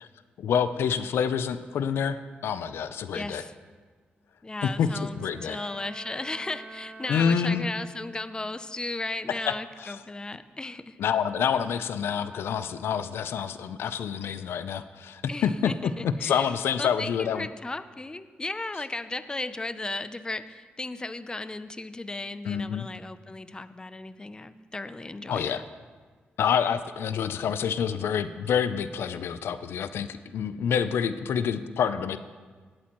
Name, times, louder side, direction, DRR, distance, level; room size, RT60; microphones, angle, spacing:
voice 1, 0.4-2.2 2.4-3.4 4.8-4.9 5.2-5.6 7.1-7.7 9.5-9.6 9.8-9.9 11.0-15.7 16.0-17.5 22.4-22.9 25.3-25.6 26.4-32.2, left 7 dB, 80° left, 12 dB, 0.5 m, -27 dB
voice 2, 3.1-3.5 4.4-11.0 15.3-16.5 16.8-25.6, left 2 dB, 20° left, 12 dB, 0.6 m, -36 dB
Bowed string instrument, 5.1-8.5, right 3 dB, 70° right, 3.4 m, -46 dB
19.0 x 8.4 x 3.1 m, 1.5 s
cardioid pair, 65°, 4 cm